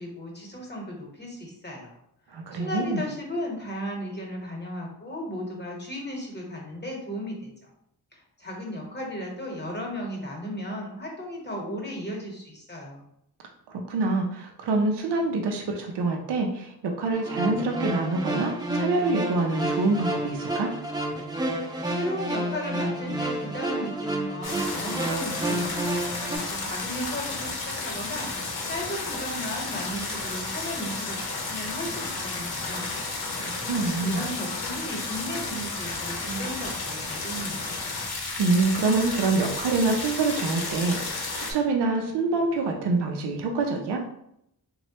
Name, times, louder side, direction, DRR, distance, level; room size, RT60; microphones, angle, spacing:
voice 1, 0.0-1.9 2.5-7.5 8.1-13.0 21.9-33.1 33.8-37.8, equal, 25° left, -1 dB, 1.0 m, -35 dB
voice 2, 2.3-3.0 13.7-20.7 33.4-34.3 38.4-44.0, right 3 dB, 85° right, 2 dB, 0.5 m, -26 dB
sound 1, 17.1-26.4, right 1 dB, 10° right, 0.5 m, -30 dB
sound 2, 24.4-41.5, left 3 dB, 70° left, 0.7 m, -32 dB
3.0 x 2.2 x 2.8 m, 0.75 s
cardioid pair, 50°, 40 cm